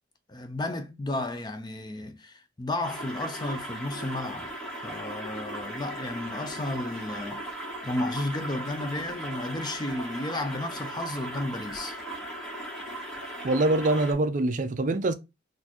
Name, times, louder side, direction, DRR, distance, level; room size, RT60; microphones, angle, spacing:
voice 1, 0.3-4.5 4.8-7.4 7.8-12.0, left 1 dB, 20° left, 0.4 m, -33 dB
sound 1, 2.8-14.1, right 1 dB, 5° left, 1.1 m, -38 dB
voice 2, 13.4-15.1, right 2 dB, 40° right, 0.4 m, -24 dB
4.1 x 2.6 x 2.8 m
head